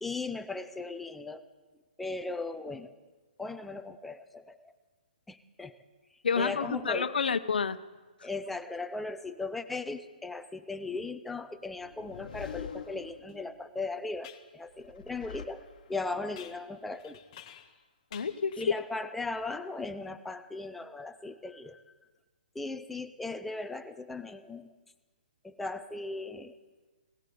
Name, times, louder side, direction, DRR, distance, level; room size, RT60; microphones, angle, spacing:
voice 1, 0.0-1.5 2.0-2.9 3.4-4.7 5.3-5.7 6.4-7.2 8.2-15.6 15.9-17.2 18.6-21.8 22.5-24.7 25.4-26.6, left 3 dB, 5° left, 8 dB, 0.5 m, -38 dB
voice 2, 6.2-7.8 18.1-18.6, left 5 dB, 90° left, 13 dB, 0.8 m, -29 dB
sound 1, 11.6-13.7 14.7-16.2, left 7 dB, 55° left, 1.2 m, -45 dB
sound 2, 13.3-13.4 14.2-14.5 16.4-17.8 18.1-19.0, left 10 dB, 30° left, 1.0 m, -51 dB
17.5 x 12.0 x 6.8 m, 1.3 s
hypercardioid pair, 165°, 5 cm